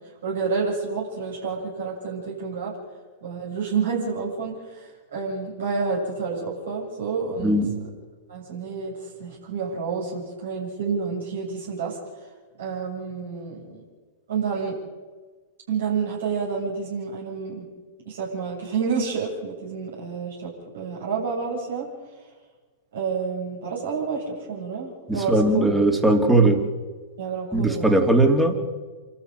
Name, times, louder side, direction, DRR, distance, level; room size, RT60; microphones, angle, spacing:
voice 1, 0.2-2.7 3.2-7.6 8.3-12.0 12.6-13.8 14.3-14.8 15.7-17.6 18.0-21.9 22.9-25.6 26.3-26.5 27.2-28.0, right 5 dB, 65° right, -2 dB, 7.7 m, -29 dB
voice 2, 7.4-7.8 25.1-26.6 27.5-28.5, right 2 dB, 5° right, 4 dB, 3.2 m, -19 dB
28.0 x 13.0 x 9.2 m, 1.4 s
figure-of-eight pair, 100°, 0 cm